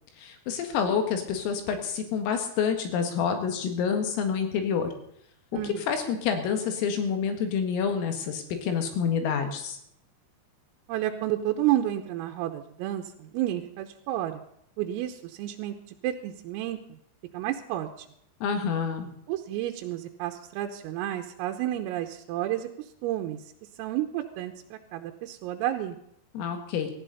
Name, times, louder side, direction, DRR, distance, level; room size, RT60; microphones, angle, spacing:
voice 1, 0.2-4.9 5.8-9.8 18.4-19.1 26.3-26.9, left 6 dB, 80° left, 6 dB, 4.5 m, -28 dB
voice 2, 10.9-14.4 14.8-15.8 16.0-17.0 17.3-17.9 19.3-22.7 23.0-23.4 23.8-26.0, right 13 dB, 90° right, 4 dB, 3.6 m, -31 dB
18.0 x 14.5 x 4.1 m, 0.71 s
omnidirectional pair, 5.9 m